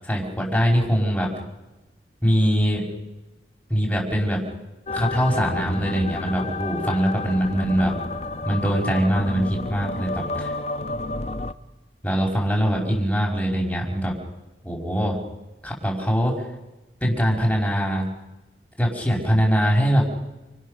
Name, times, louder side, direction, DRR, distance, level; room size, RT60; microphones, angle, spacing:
voice 1, 0.0-1.3 2.2-2.8 3.7-4.4 4.9-7.9 8.5-10.5 12.0-14.1 14.6-15.2 15.6-16.3 17.0-18.1 18.8-20.0, equal, 5° left, -2 dB, 5.1 m, -22 dB
sound 1, 4.9-11.5, left 2 dB, 35° left, 0.9 m, -30 dB
29.0 x 25.5 x 6.6 m, 1.1 s
head